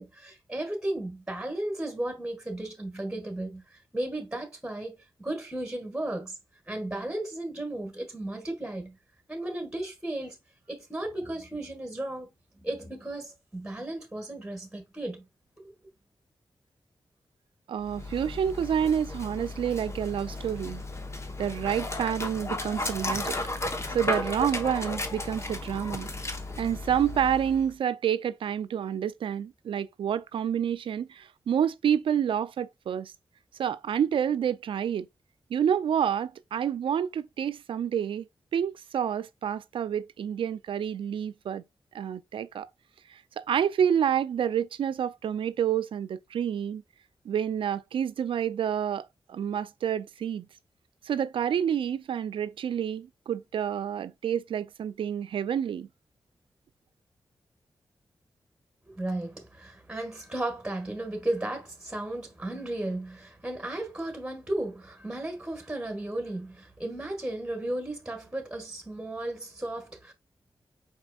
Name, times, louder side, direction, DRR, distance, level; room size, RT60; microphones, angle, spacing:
voice 1, 0.0-6.4 6.7-9.0 9.3-10.4 10.7-15.3 15.6-15.7 58.9-70.1, right 1 dB, 10° right, 1.5 m, -35 dB
voice 2, 17.7-20.8 21.4-23.4 23.9-26.1 26.6-33.1 33.6-35.1 35.5-38.3 38.5-41.6 41.9-42.7 43.1-46.8 47.3-50.5 51.1-55.9, right 8 dB, 80° right, 0.4 m, -28 dB
Dog, 17.8-27.7, left 2 dB, 35° left, 0.9 m, -34 dB
5.1 x 4.3 x 2.3 m
cardioid pair, 60°, 9 cm